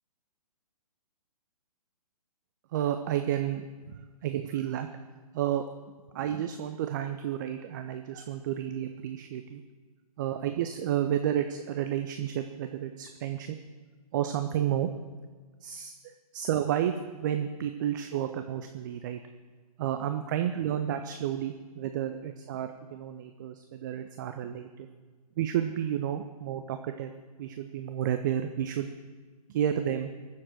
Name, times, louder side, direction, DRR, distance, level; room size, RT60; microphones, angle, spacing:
voice 1, 2.7-4.9 5.3-5.7 6.1-9.6 10.2-13.6 14.1-14.9 15.6-19.2 19.8-24.9 25.4-27.1 27.4-28.9 29.5-30.1, right 10 dB, 30° right, 7 dB, 0.5 m, -31 dB
22.0 x 7.3 x 4.6 m, 1.4 s
figure-of-eight pair, 125°, 20 cm